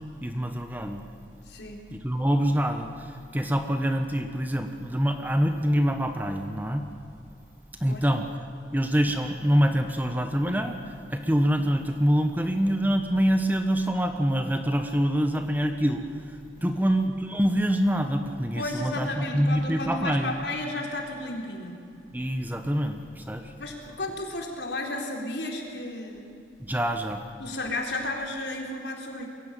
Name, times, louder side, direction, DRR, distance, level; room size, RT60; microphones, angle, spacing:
voice 1, 0.2-1.0 1.9-2.9 3.3-6.8 7.8-8.3 8.7-10.8 11.1-16.0 16.6-20.4 22.1-23.4 26.6-27.2, equal, 10° right, 6 dB, 1.1 m, -25 dB
voice 2, 1.4-1.8 7.9-8.1 16.5-16.9 18.5-21.8 23.6-26.3 27.4-29.3, left 2 dB, 75° left, 1 dB, 4.1 m, -33 dB
22.5 x 16.5 x 9.1 m, 2.6 s
head